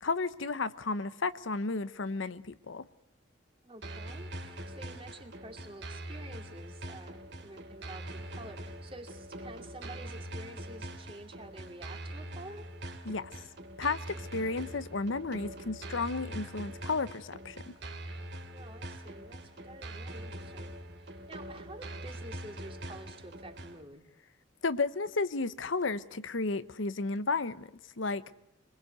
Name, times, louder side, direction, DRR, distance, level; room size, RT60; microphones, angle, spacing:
voice 1, 0.0-2.8 13.0-13.3 13.8-17.7 24.6-27.7 28.0-28.2, left 3 dB, 75° left, 0.9 m, -33 dB
voice 2, 3.6-12.7 18.5-20.7 21.0-24.1, right 1 dB, 30° right, 2.5 m, -49 dB
sound 1, 3.8-23.8, right 1 dB, 60° right, 2.7 m, -43 dB
24.0 x 21.0 x 8.1 m
head